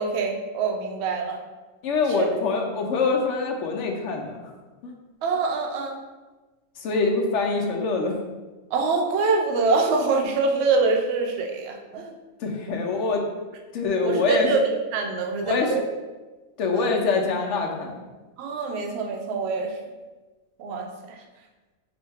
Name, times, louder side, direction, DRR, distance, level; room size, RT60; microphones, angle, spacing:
voice 1, 0.0-1.4 2.1-2.3 5.2-6.0 8.7-12.1 14.0-15.8 16.7-16.9 18.4-19.8 20.6-21.2, right 4 dB, 60° right, 2 dB, 0.7 m, -25 dB
voice 2, 1.8-4.4 4.8-4.9 6.8-8.1 12.4-13.2 13.7-14.5 15.4-15.8 16.6-18.0, left 4 dB, 65° left, 2 dB, 0.9 m, -24 dB
5.9 x 2.2 x 3.3 m, 1.2 s
omnidirectional pair, 1.4 m